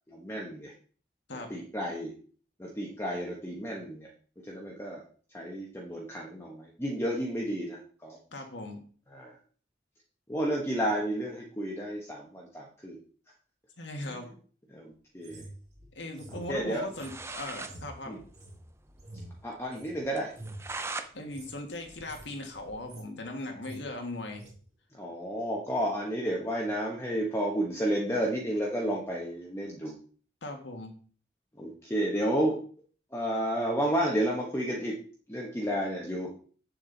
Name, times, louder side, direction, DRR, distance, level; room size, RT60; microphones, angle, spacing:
voice 1, 0.1-0.7 1.5-2.1 2.6-4.1 4.4-5.0 5.3-8.2 9.1-9.3 10.3-13.0 14.0-14.3 14.7-15.4 16.3-16.9 18.1-18.2 19.4-20.3 24.9-30.0 31.6-32.6 33.1-34.9 35.3-36.3, equal, 15° left, -2 dB, 1.2 m, -31 dB
voice 2, 8.3-8.8 13.8-14.3 15.9-18.2 21.1-24.4 30.4-31.0, left 1 dB, 80° left, 3 dB, 1.7 m, -39 dB
sound 1, 15.2-20.0 20.3-20.7 21.2-21.5 21.9-22.3 22.6-23.2 23.4-23.8 24.4-24.6, right 1 dB, 35° right, 2.6 m, -47 dB
sound 2, 16.7-16.8 16.9-17.8 18.1-18.2 18.4-18.5 18.9-19.0 19.4-19.5 20.2-21.1 21.5-22.8, right 3 dB, 15° right, 0.5 m, -40 dB
7.8 x 7.3 x 4.0 m, 0.43 s
head